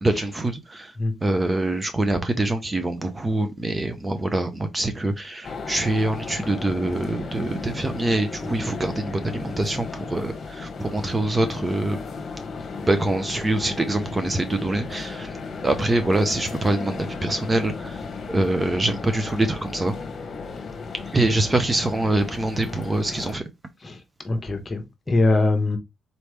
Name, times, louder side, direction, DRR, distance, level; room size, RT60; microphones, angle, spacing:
voice 1, 0.0-12.0 12.8-20.0 21.0-23.4, right 2 dB, 20° right, 0.7 m, -24 dB
sound 1, 5.4-23.3, left 4 dB, 50° left, 1.1 m, -35 dB
voice 2, 24.2-25.8, left 2 dB, 25° left, 1.2 m, -22 dB
4.1 x 3.3 x 3.3 m
cardioid pair, 90°, 0 cm